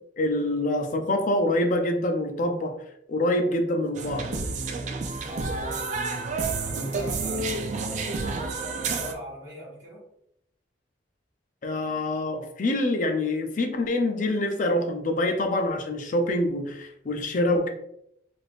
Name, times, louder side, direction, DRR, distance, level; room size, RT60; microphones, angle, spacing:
voice 1, 0.2-2.8 3.1-4.5 6.7-6.9 11.6-17.7, left 1 dB, 45° left, 5 dB, 0.5 m, -26 dB
sound 1, 3.9-9.1, right 3 dB, 40° right, 0.3 m, -30 dB
voice 2, 5.0-5.9 6.6-10.0, equal, 20° right, -9 dB, 1.2 m, -42 dB
3.4 x 2.5 x 2.4 m, 0.73 s
head